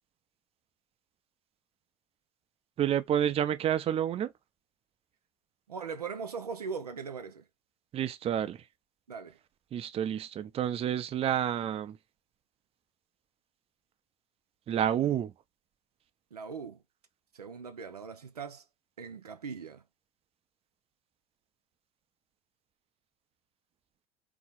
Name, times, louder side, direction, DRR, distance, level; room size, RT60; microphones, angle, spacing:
voice 1, 2.8-4.3 7.9-8.7 9.7-12.0 14.7-15.3, right 10 dB, 30° right, 0.7 m, -29 dB
voice 2, 5.7-7.4 9.1-9.4 16.3-16.8 17.3-18.6 19.0-19.8, right 5 dB, 80° right, 0.6 m, -40 dB
3.9 x 2.9 x 4.1 m
figure-of-eight pair, 70°, 19 cm